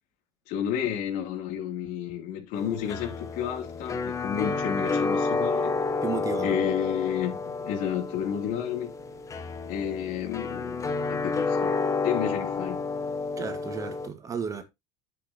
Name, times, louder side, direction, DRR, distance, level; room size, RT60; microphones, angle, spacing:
voice 1, 0.5-5.7 6.4-8.9 9.7-10.8 11.1-11.7 12.0-12.8, left 9 dB, 60° left, 2.9 m, -31 dB
sound 1, 2.5-14.1, left 4 dB, 20° left, 1.1 m, -30 dB
voice 2, 6.0-6.6 13.4-14.6, right 6 dB, 20° right, 1.7 m, -33 dB
10.0 x 7.9 x 2.9 m
cardioid pair, 155°, 15 cm